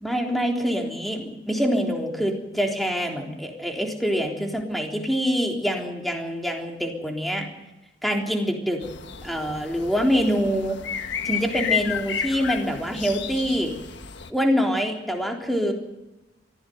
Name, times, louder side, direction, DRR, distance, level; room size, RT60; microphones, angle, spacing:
voice 1, 0.0-7.5 8.0-8.8 9.2-10.8 11.2-13.7 14.3-15.7, equal, ahead, 1 dB, 3.6 m, -25 dB
sound 1, 8.8-14.3, left 8 dB, 65° left, 1.4 m, -32 dB
23.5 x 15.5 x 8.0 m, 0.98 s
head